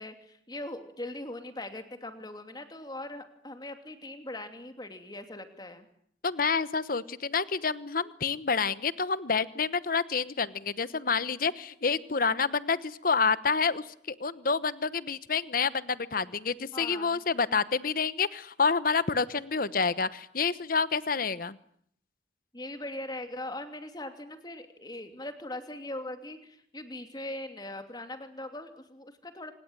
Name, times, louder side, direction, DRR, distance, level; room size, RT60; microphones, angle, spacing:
voice 1, 0.0-5.9 16.7-17.2 22.5-29.5, left 1 dB, 25° left, 7 dB, 2.8 m, -40 dB
voice 2, 6.2-21.6, left 5 dB, 50° left, 16 dB, 1.1 m, -28 dB
26.0 x 20.0 x 9.2 m, 0.66 s
head